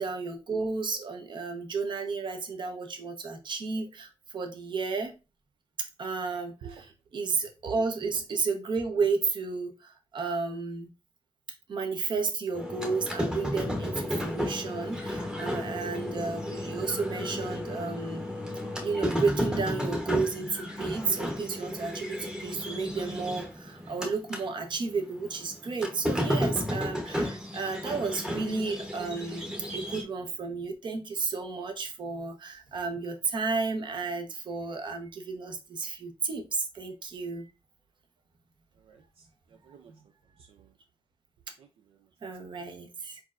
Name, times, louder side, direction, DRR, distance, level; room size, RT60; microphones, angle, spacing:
voice 1, 0.0-5.1 6.0-6.9 7.1-10.9 11.7-18.3 18.8-37.5 39.9-40.0 42.2-43.2, right 4 dB, 55° right, 0.9 m, -32 dB
sound 1, 12.5-24.5 24.8-30.0, equal, 10° right, 0.9 m, -33 dB
voice 2, 38.8-39.9 40.4-40.7 41.6-42.1 42.5-42.7, right 7 dB, 75° right, 0.5 m, -51 dB
4.4 x 4.1 x 2.4 m
cardioid pair, 115°, 10 cm